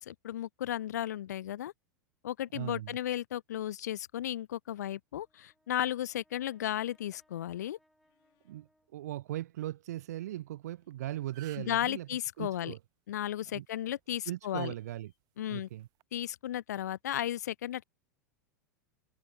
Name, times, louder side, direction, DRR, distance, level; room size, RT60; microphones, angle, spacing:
voice 1, 0.0-1.7 2.2-7.8 11.6-12.7 13.1-14.7 15.4-15.7 16.1-17.8, left 12 dB, 70° left, 0.4 m, -34 dB
voice 2, 2.5-3.0 8.4-12.1 12.4-12.8 13.5-13.7 14.3-15.1 15.5-15.9, right 14 dB, 65° right, 0.6 m, -39 dB
Brass instrument, 5.1-9.5, equal, ahead, 7.4 m, -72 dB
sound 1, 8.0-8.5 10.4-11.0 11.3-11.7 12.5-12.6 14.4-15.2, left 24 dB, 50° left, 6.3 m, -78 dB
sound 2, 10.8-10.9 11.2-11.8 13.5-13.7 14.6-14.7 15.8-16.0, right 19 dB, 45° right, 1.7 m, -53 dB
figure-of-eight pair, 90°, 9 cm